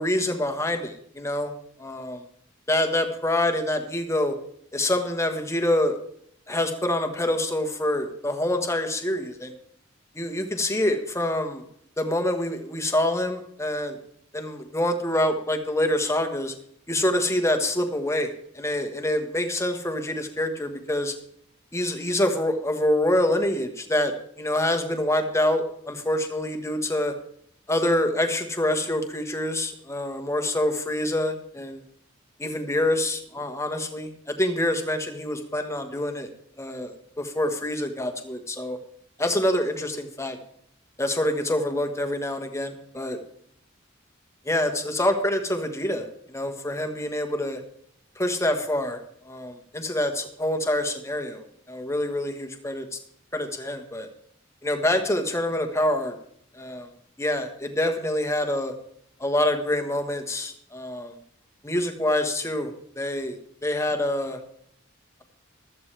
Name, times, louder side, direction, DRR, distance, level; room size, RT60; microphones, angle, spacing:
voice 1, 0.0-1.5 1.8-2.2 2.7-4.3 4.7-6.0 6.5-9.5 10.1-11.6 12.0-14.0 14.3-16.5 16.9-21.1 21.7-27.1 27.7-31.8 32.4-36.3 36.6-38.8 39.2-40.4 41.0-43.2 44.4-47.6 48.2-53.0 53.3-54.1 54.6-56.1 56.6-56.9 57.2-58.7 59.2-61.1 61.6-64.4, left 1 dB, 15° left, 5 dB, 1.4 m, -26 dB
15.0 x 13.0 x 3.4 m, 0.69 s
head